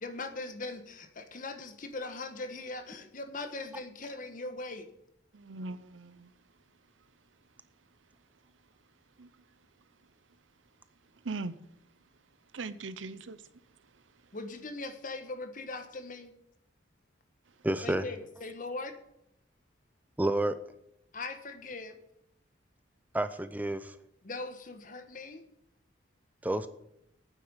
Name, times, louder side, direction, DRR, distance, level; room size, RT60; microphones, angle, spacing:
voice 1, 0.0-4.9 14.3-16.3 17.8-19.0 21.1-22.0 24.2-25.4, left 3 dB, 45° left, 1.3 m, -40 dB
voice 2, 5.3-6.3 9.2-9.3 11.2-11.6 12.5-13.4, right 3 dB, 90° right, 0.7 m, -39 dB
voice 3, 17.6-18.0 20.2-20.6 23.1-24.0 26.4-26.7, right 1 dB, 10° right, 0.5 m, -29 dB
9.2 x 7.7 x 8.9 m
head